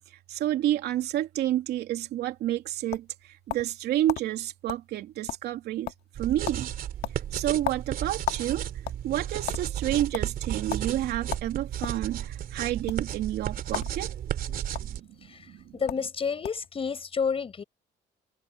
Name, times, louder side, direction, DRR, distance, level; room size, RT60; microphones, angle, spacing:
voice 1, 0.3-5.9 6.2-6.7 7.3-8.6 9.0-14.1 14.8-15.8, right 13 dB, 75° right, 3.0 m, -30 dB
sound 1, 2.3-3.8 4.1-4.2 4.7-4.9 5.1-5.6 5.9-6.2 6.5-6.6 7.0-8.5 8.8-9.6 10.1-10.3 10.7-10.9 11.3-12.0 12.8-13.0 13.7-13.9 14.2-14.8 15.6-15.7 15.9-16.1 16.4-16.7, left 13 dB, 75° left, 2.0 m, -34 dB
sound 2, 6.1-15.0, right 10 dB, 60° right, 3.0 m, -33 dB
voice 2, 15.2-17.6, left 6 dB, 35° left, 5.6 m, -30 dB
cardioid pair, 110°, 17 cm